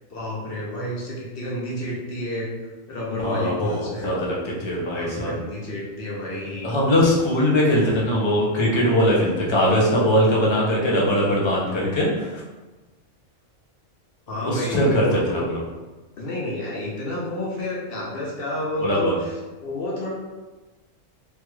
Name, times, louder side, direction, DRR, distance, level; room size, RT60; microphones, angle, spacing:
voice 1, 0.1-2.5 2.9-4.2 4.7-6.7 14.3-15.4 16.2-20.1, left 1 dB, 50° left, -4 dB, 0.8 m, -30 dB
voice 2, 3.2-5.3 6.6-12.4 14.4-15.6 18.8-19.2, equal, 35° left, -4 dB, 0.4 m, -21 dB
3.2 x 2.4 x 3.0 m, 1.2 s
omnidirectional pair, 1.4 m